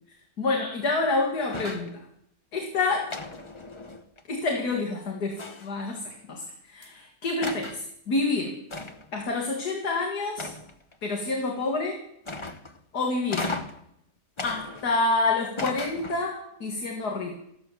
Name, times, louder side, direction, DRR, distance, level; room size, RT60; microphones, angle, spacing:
voice 1, 0.4-1.9 2.5-3.2 4.3-8.5 9.1-10.5 11.0-12.0 12.9-13.5 14.4-17.4, left 3 dB, 75° left, 1 dB, 2.6 m, -28 dB
sound 1, 1.5-2.0 3.1-4.2 5.4-5.9 6.8-6.9 7.4-7.8 8.7-9.2 10.4-10.9 12.2-12.8 13.3-13.9 14.4-15.1 15.6-16.3, left 2 dB, 30° left, 0.6 m, -36 dB
13.5 x 13.0 x 7.5 m, 0.75 s
omnidirectional pair, 1.7 m